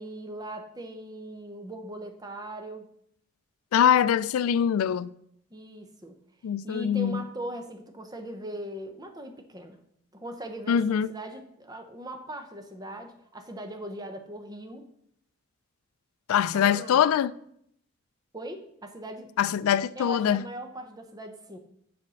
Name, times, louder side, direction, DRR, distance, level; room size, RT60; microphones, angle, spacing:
voice 1, 0.0-2.9 5.5-6.2 6.6-9.8 10.1-14.9 16.5-17.1 18.3-19.3 20.0-21.6, right 1 dB, 20° right, 0.7 m, -40 dB
voice 2, 3.7-5.1 6.4-7.2 10.7-11.1 16.3-17.3 19.4-20.4, left 8 dB, 85° left, 0.3 m, -23 dB
6.6 x 4.2 x 6.2 m
head